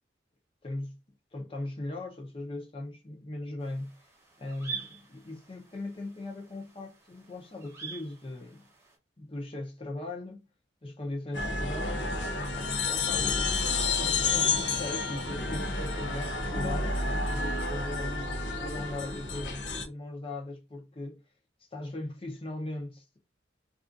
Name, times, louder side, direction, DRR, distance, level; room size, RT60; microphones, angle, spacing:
voice 1, 1.3-3.9 4.4-8.6 9.2-10.5 10.8-12.2 12.5-16.9 17.2-18.3 18.6-21.2 21.7-23.2, left 2 dB, 30° left, 0.6 m, -39 dB
sound 1, 3.6-9.0, right 5 dB, 15° right, 0.8 m, -45 dB
sound 2, 11.3-19.9, left 3 dB, 75° left, 0.6 m, -30 dB
2.4 x 2.4 x 2.5 m
head